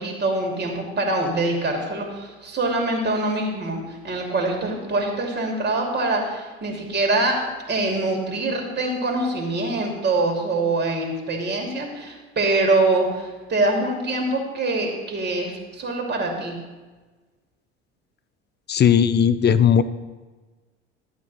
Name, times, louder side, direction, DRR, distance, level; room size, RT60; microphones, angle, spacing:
voice 1, 0.0-16.6, right 2 dB, 30° right, 1 dB, 2.6 m, -24 dB
voice 2, 18.7-19.8, left 8 dB, 30° left, 13 dB, 0.7 m, -17 dB
12.5 x 8.3 x 4.1 m, 1.3 s
hypercardioid pair, 70°, 34 cm